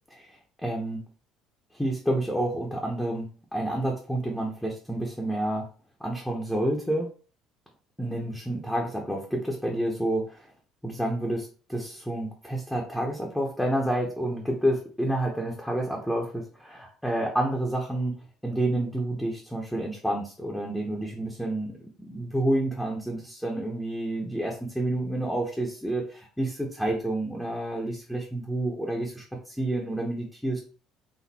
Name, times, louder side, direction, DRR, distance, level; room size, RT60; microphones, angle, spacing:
voice 1, 0.1-1.1 1.7-5.7 6.0-7.1 8.0-10.5 10.8-18.2 18.4-30.6, right 1 dB, 5° left, -1 dB, 0.9 m, -29 dB
4.2 x 2.6 x 4.2 m, 0.39 s
cardioid pair, 125°, 0 cm